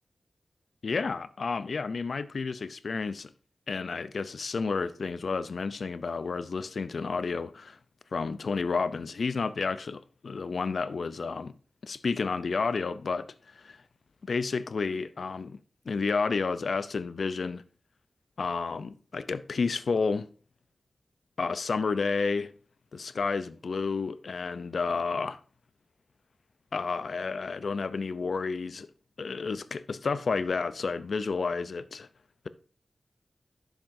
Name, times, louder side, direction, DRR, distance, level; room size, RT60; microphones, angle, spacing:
voice 1, 0.8-3.3 3.7-7.8 8.1-11.5 11.8-13.8 14.2-15.6 15.9-17.6 18.4-20.3 21.4-22.5 22.9-25.4 26.7-28.9 29.2-32.1, left 4 dB, 70° left, 0.5 m, -31 dB
10.5 x 7.2 x 2.6 m
wide cardioid pair, 100°, 0 cm